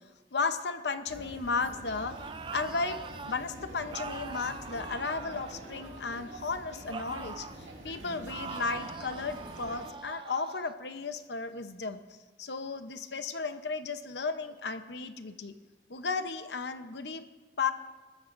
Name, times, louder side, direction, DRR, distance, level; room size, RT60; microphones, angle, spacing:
voice 1, 0.3-2.2 2.5-3.0 3.3-12.0 12.4-15.5 15.9-17.2 17.6-17.7, left 4 dB, 65° left, 9 dB, 0.8 m, -34 dB
sound 1, 1.1-9.9, right 1 dB, 85° right, 2.4 m, -46 dB
sound 2, 2.0-3.4 3.9-6.2 6.9-7.6 8.3-10.8, right 5 dB, 30° right, 0.5 m, -43 dB
21.5 x 14.5 x 2.6 m, 1.3 s
head